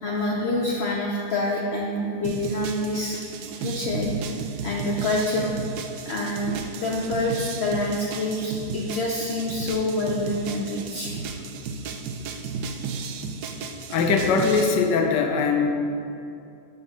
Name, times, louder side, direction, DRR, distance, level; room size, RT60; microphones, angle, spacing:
voice 1, 0.0-5.5 6.0-11.1 12.7-12.9, left 1 dB, 60° left, -2 dB, 0.7 m, -27 dB
sound 1, 2.2-14.8, right 5 dB, 75° right, 1.1 m, -34 dB
voice 2, 13.9-15.7, left 5 dB, 85° left, 3 dB, 1.3 m, -21 dB
10.5 x 5.5 x 3.1 m, 2.6 s
omnidirectional pair, 1.8 m